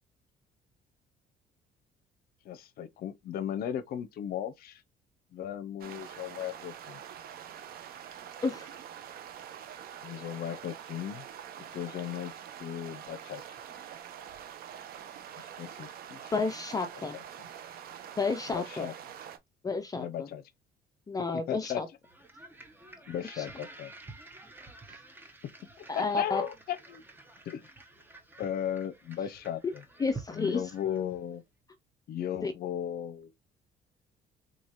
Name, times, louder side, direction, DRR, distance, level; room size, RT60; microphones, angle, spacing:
voice 1, 2.4-4.8 5.3-7.0 10.0-11.2 11.7-12.3 12.6-13.4 15.4-16.3 17.1-17.5 18.5-18.9 19.9-20.4 21.3-21.8 23.1-23.9 25.4-25.5 25.8-27.0 27.5-27.7 28.4-29.8 30.3-31.4 32.1-33.3, left 10 dB, 65° left, 0.7 m, -36 dB
sound 1, 5.8-19.4, right 9 dB, 60° right, 0.7 m, -45 dB
voice 2, 16.3-17.2 18.2-18.9 19.6-20.3 21.1-21.9 23.3-23.4 25.9-26.4 30.0-30.6 32.4-32.5, left 4 dB, 20° left, 0.5 m, -31 dB
sound 2, 22.0-31.3, right 3 dB, 10° right, 0.9 m, -50 dB
3.9 x 3.1 x 2.5 m
cardioid pair, 110°, 17 cm